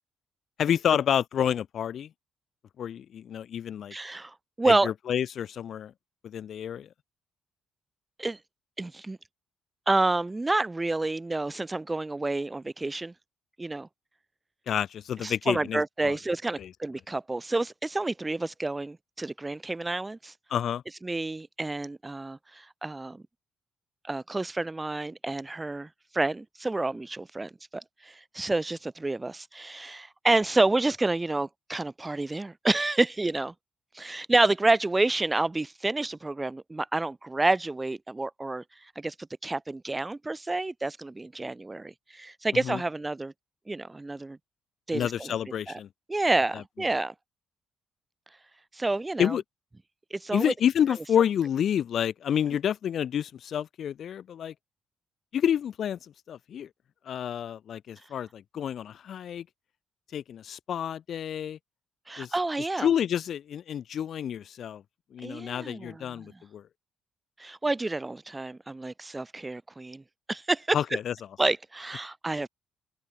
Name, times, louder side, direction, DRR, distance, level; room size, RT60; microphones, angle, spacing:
voice 1, 0.6-2.1 2.8-3.9 4.7-5.9 6.2-6.9 14.7-16.2 16.6-16.7 20.5-20.8 42.7-42.8 44.9-45.9 46.5-46.6 49.2-49.4 50.3-54.5 55.3-56.0 56.3-56.7 57.1-59.4 60.1-61.6 62.2-62.3 62.8-64.8 65.1-66.6 70.7-71.1, left 9 dB, 65° left, 2.1 m, -29 dB
voice 2, 3.9-4.9 8.2-8.4 8.8-9.2 9.9-13.1 13.6-13.9 15.2-20.3 21.0-23.2 24.1-33.5 33.9-38.6 39.0-39.1 39.4-43.3 43.7-44.4 44.9-45.3 45.7-45.8 46.1-47.1 48.7-49.4 50.1-50.5 62.1-62.9 65.2-66.4 67.4-70.0 70.3-70.8 71.4-72.5, right 2 dB, 15° right, 7.8 m, -29 dB
cardioid pair, 90°, 0 cm